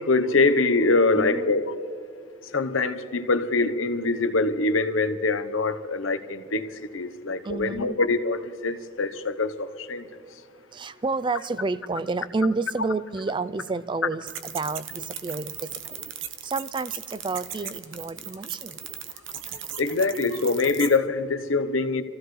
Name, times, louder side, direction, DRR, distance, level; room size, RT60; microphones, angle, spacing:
voice 1, 0.0-1.7 2.5-10.1 19.8-22.0, left 3 dB, 80° left, 10 dB, 0.9 m, -24 dB
voice 2, 1.1-1.5 7.4-8.0 10.7-14.3 14.5-16.0 16.4-18.8, right 3 dB, 25° right, 16 dB, 0.4 m, -30 dB
sound 1, 14.3-21.0, right 9 dB, 70° right, 0.9 m, -37 dB
27.5 x 15.0 x 3.2 m, 2.3 s
head